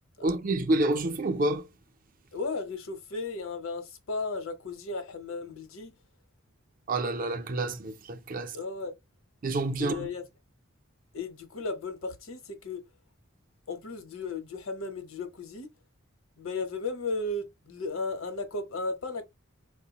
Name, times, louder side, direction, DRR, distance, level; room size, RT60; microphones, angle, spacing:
voice 1, 0.2-1.7 6.9-8.6 9.4-10.1, right 2 dB, 40° right, 0.5 m, -28 dB
voice 2, 2.3-5.9 8.5-8.9 9.8-10.2 11.1-12.8 13.7-15.7 16.4-19.2, left 3 dB, 75° left, 0.9 m, -35 dB
4.8 x 2.1 x 2.9 m
head